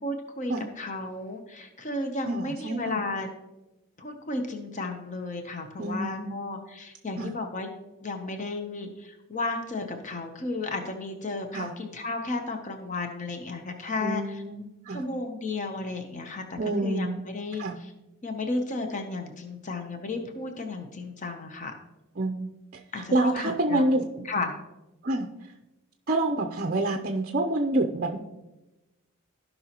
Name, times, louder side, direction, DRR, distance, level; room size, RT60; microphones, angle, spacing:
voice 1, 0.0-3.3 4.0-7.7 8.0-14.4 14.9-17.9 18.2-21.8 22.9-23.9 24.2-24.5, left 2 dB, 35° left, 5 dB, 0.7 m, -33 dB
voice 2, 2.2-3.0 5.8-6.5 7.2-7.3 11.5-11.7 14.0-15.0 16.6-17.3 17.6-17.8 22.2-22.5 23.1-24.2 25.0-25.3 26.1-28.2, right 2 dB, 40° right, 3 dB, 0.6 m, -27 dB
16.0 x 5.5 x 2.9 m, 1.0 s
head